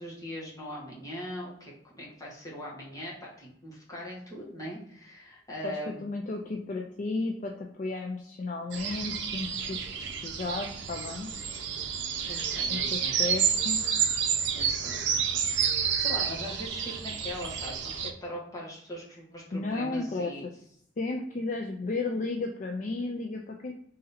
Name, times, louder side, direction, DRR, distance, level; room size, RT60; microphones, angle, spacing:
voice 1, 0.0-6.1 12.2-13.1 14.5-15.2 15.6-20.4, equal, 20° left, -4 dB, 1.3 m, -41 dB
voice 2, 5.6-7.5 7.8-9.8 10.2-11.3 12.7-13.8 19.5-20.5 21.0-23.7, left 3 dB, 45° left, 1 dB, 0.4 m, -33 dB
sound 1, 8.7-18.1, right 7 dB, 80° right, 0.5 m, -30 dB
3.9 x 2.7 x 4.0 m, 0.67 s
head